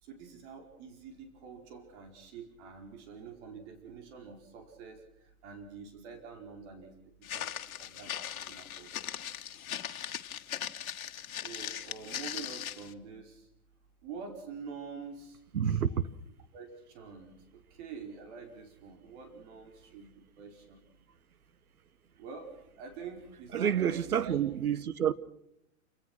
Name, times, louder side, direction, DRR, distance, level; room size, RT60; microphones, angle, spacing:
voice 1, 0.0-7.5 7.8-8.9 11.4-13.5 14.0-16.0 16.5-20.1 20.4-20.8 22.2-24.4, right 5 dB, 50° right, 4.9 m, -47 dB
Walk footsteps, 7.2-12.9, left 10 dB, 70° left, 1.8 m, -39 dB
voice 2, 15.5-15.9 23.5-25.1, right 9 dB, 85° right, 1.2 m, -28 dB
28.5 x 18.5 x 6.2 m
hypercardioid pair, 105°, 43 cm